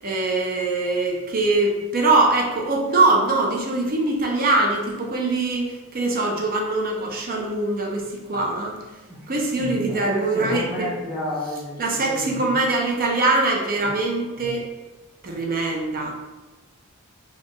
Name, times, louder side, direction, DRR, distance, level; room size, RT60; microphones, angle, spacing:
voice 1, 0.0-8.7 9.3-10.9 11.8-14.6 15.2-16.1, right 2 dB, 40° right, 0 dB, 0.6 m, -22 dB
voice 2, 9.9-12.5 13.8-14.0, left 1 dB, ahead, -12 dB, 0.7 m, -32 dB
4.3 x 2.4 x 3.0 m, 1.2 s
head